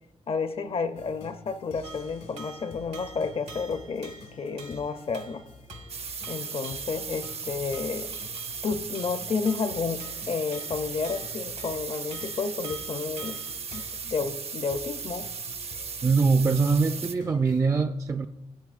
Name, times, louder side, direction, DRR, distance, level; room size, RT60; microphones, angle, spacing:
voice 1, 0.3-5.4 6.3-8.1 8.6-13.4 13.7-15.3, left 5 dB, 55° left, 0.6 m, -31 dB
sound 1, 0.9-17.6, left 4 dB, 75° left, 1.5 m, -49 dB
sound 2, 1.8-14.0, right 4 dB, 75° right, 1.4 m, -48 dB
sound 3, 5.9-17.1, right 6 dB, 55° right, 0.7 m, -37 dB
voice 2, 16.0-18.3, right 4 dB, 25° right, 0.4 m, -23 dB
15.5 x 8.6 x 2.5 m
cardioid pair, 75°, 12 cm